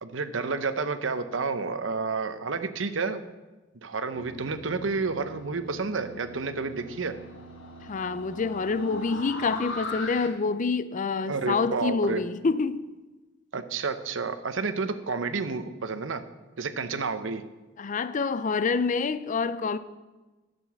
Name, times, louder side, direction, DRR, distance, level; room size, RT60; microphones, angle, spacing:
voice 1, 0.0-3.2 3.8-7.1 11.3-12.2 13.5-16.2 16.6-17.4, right 4 dB, 80° right, 0.8 m, -30 dB
sound 1, 4.1-10.3, left 2 dB, 80° left, 1.4 m, -40 dB
voice 2, 7.9-12.9 17.8-19.8, left 4 dB, 40° left, 0.5 m, -27 dB
11.0 x 6.9 x 7.0 m
head